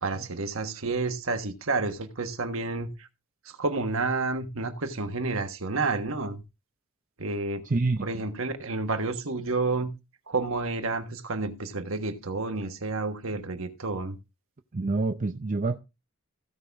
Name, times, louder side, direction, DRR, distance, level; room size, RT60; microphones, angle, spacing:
voice 1, 0.0-3.1 3.4-6.4 7.2-7.7 8.0-9.9 10.3-14.2, right 3 dB, 65° right, 1.4 m, -30 dB
voice 2, 7.6-8.1 14.7-15.8, right 3 dB, 35° right, 0.6 m, -27 dB
16.0 x 5.6 x 3.5 m
head